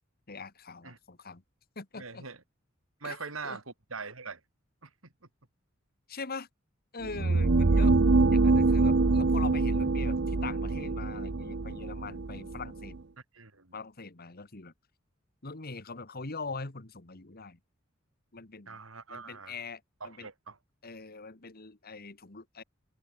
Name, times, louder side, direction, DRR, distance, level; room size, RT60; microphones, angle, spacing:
voice 1, 0.3-1.4 1.8-2.3 3.0-3.2 3.4-3.6 6.1-6.5 6.9-8.0 8.3-13.0 13.7-14.7 15.4-17.6 18.3-18.8 19.1-20.3 20.8-22.6, left 4 dB, 50° left, 1.8 m, -42 dB
voice 2, 2.0-2.4 3.0-4.4 4.8-4.9 13.3-13.7 18.7-19.5 20.0-20.6, right 4 dB, 80° right, 3.4 m, -42 dB
sound 1, 7.0-13.0, right 3 dB, 60° right, 0.7 m, -25 dB
head